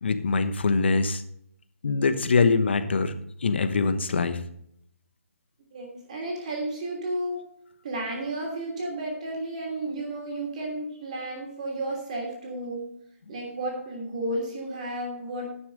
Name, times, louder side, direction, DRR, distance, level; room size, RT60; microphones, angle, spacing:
voice 1, 0.0-1.2 1.8-3.1 3.4-4.4, left 4 dB, 50° left, 10 dB, 1.0 m, -23 dB
voice 2, 5.7-7.4 7.8-12.9 13.3-15.6, right 1 dB, 30° right, 0 dB, 2.9 m, -32 dB
11.0 x 6.5 x 5.2 m, 0.71 s
hypercardioid pair, 175°, 8 cm